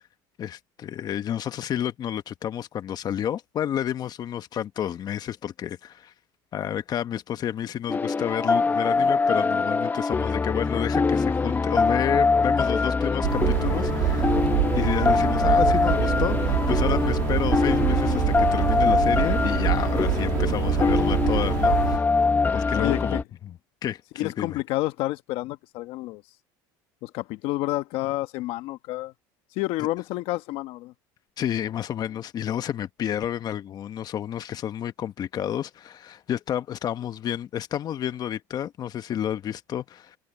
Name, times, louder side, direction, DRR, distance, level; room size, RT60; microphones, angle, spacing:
voice 1, 0.4-6.1 6.5-14.4 14.7-22.0 22.5-23.2 23.4-23.5 23.8-24.6 31.4-40.2, left 10 dB, 40° left, 1.3 m, -30 dB
sound 1, 7.9-23.2, left 4 dB, 20° left, 0.9 m, -23 dB
sound 2, 13.2-22.0, right 24 dB, 85° right, 2.0 m, -26 dB
voice 2, 22.8-23.2 24.2-26.2 27.0-29.1 29.5-30.9, left 18 dB, 70° left, 1.2 m, -29 dB
supercardioid pair, 110°, 10 cm